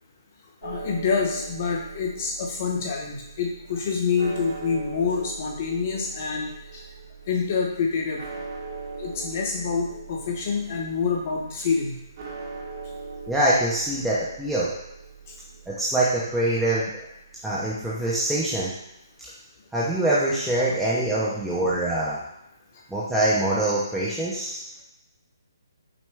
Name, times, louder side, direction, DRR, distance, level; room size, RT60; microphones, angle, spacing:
voice 1, 0.6-6.8 7.3-8.2 9.0-12.0, left 5 dB, 35° left, 0 dB, 0.8 m, -27 dB
sound 1, 0.6-18.5, right 4 dB, 40° right, 0.9 m, -41 dB
voice 2, 13.3-14.7 15.7-16.9 17.4-18.7 19.7-22.2 22.9-24.6, right 1 dB, ahead, -9 dB, 0.4 m, -24 dB
6.0 x 2.2 x 3.3 m, 0.88 s
hypercardioid pair, 170°, 2 cm